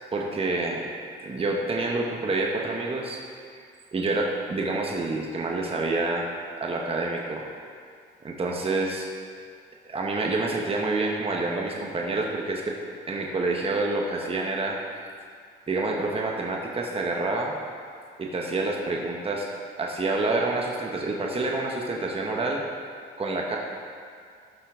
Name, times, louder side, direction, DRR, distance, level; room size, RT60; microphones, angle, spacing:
voice 1, 0.1-0.8 1.2-3.2 3.5-3.7 3.9-6.3 6.6-7.4 8.2-9.0 9.9-12.7 13.1-14.8 15.7-17.5 18.2-19.5 19.8-22.6 23.2-23.6, right 2 dB, 30° right, -1 dB, 1.0 m, -27 dB
12.5 x 5.8 x 3.7 m, 2.2 s
cardioid pair, 90°, 20 cm